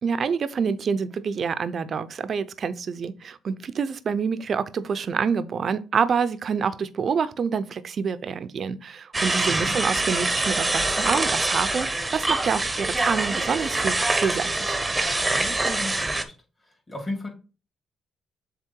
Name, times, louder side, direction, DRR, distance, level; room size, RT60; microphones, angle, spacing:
voice 1, 0.0-14.8, right 6 dB, 50° right, 0.6 m, -27 dB
sound 1, 9.1-16.2, right 2 dB, 15° right, 0.9 m, -25 dB
voice 2, 15.3-16.3 16.6-17.3, left 1 dB, 25° left, 2.9 m, -35 dB
7.5 x 3.6 x 4.6 m
cardioid pair, 90°, 0 cm